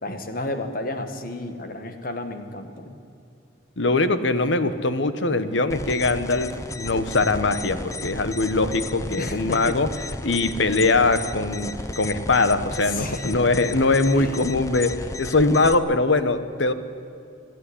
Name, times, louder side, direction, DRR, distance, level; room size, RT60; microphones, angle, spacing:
voice 1, 0.0-3.0 9.2-9.8 10.2-10.5 12.9-13.3 14.1-14.4, left 2 dB, 50° left, 7 dB, 1.8 m, -32 dB
voice 2, 3.8-9.9 10.2-16.7, left 3 dB, 80° left, 11 dB, 1.1 m, -22 dB
sound 1, 5.7-15.7, left 2 dB, 15° left, 0.7 m, -34 dB
28.0 x 11.0 x 10.0 m, 2.5 s
head